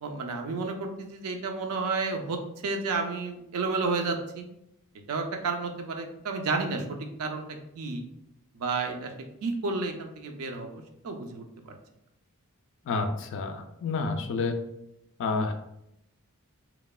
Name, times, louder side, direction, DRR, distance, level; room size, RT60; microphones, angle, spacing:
voice 1, 0.0-4.5 5.1-7.5 7.8-8.0 8.5-9.1 9.4-11.7, right 4 dB, 75° right, 4 dB, 0.4 m, -31 dB
voice 2, 12.9-14.6 15.2-15.5, left 3 dB, 55° left, 7 dB, 0.3 m, -29 dB
3.0 x 2.1 x 2.2 m, 0.82 s
head